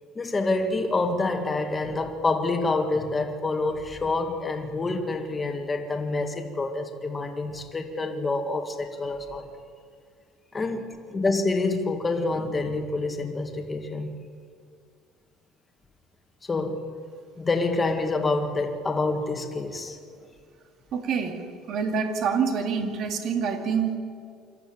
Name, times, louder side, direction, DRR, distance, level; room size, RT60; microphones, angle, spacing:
voice 1, 0.2-9.5 10.5-14.2 16.4-16.8 17.4-20.0, left 3 dB, 20° left, 5 dB, 1.9 m, -27 dB
voice 2, 20.9-21.4 21.7-24.0, right 6 dB, 50° right, 4 dB, 2.5 m, -26 dB
26.0 x 13.0 x 8.8 m, 2.3 s
cardioid pair, 140°, 0 cm